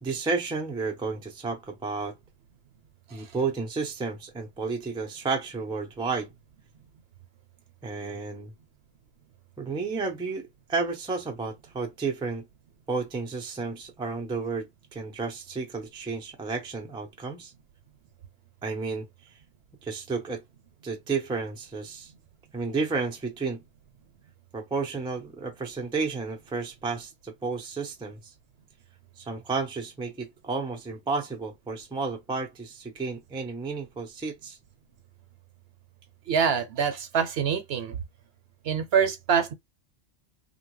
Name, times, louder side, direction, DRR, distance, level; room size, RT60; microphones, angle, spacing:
voice 1, 0.0-2.2 3.1-6.3 7.8-8.5 9.6-12.5 12.9-17.5 18.6-19.4 19.8-20.4 20.8-22.1 22.5-23.6 24.5-28.3 29.2-34.6, right 4 dB, 5° right, 0.3 m, -32 dB
voice 2, 36.3-38.0 38.6-39.5, right 7 dB, 65° right, 0.8 m, -25 dB
2.8 x 2.2 x 3.0 m
omnidirectional pair, 1.2 m